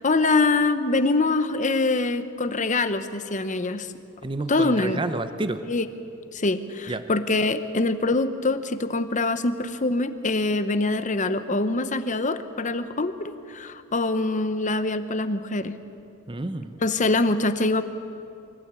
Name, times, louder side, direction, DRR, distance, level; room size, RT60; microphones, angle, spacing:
voice 1, 0.0-3.9 4.5-5.0 5.7-5.8 6.3-15.8 16.8-17.8, left 2 dB, 35° left, 11 dB, 0.9 m, -24 dB
voice 2, 4.2-5.7 6.9-7.0 16.3-16.8, right 2 dB, 25° right, 10 dB, 0.7 m, -30 dB
24.5 x 15.0 x 8.3 m, 2.7 s
head